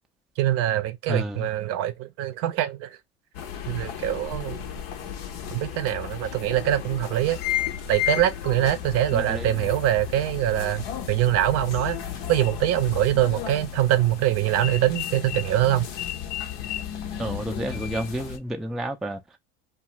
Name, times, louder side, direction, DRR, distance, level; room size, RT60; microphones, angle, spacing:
voice 1, 0.4-3.0 3.7-4.6 5.5-7.4 7.9-12.0 12.3-15.9, right 13 dB, 55° right, 0.6 m, -24 dB
voice 2, 1.1-1.5 9.1-9.7 17.2-19.2, right 1 dB, ahead, 0.3 m, -30 dB
sound 1, 3.3-18.4, left 10 dB, 70° left, 0.8 m, -33 dB
2.3 x 2.3 x 2.9 m
supercardioid pair, 100°, 30 cm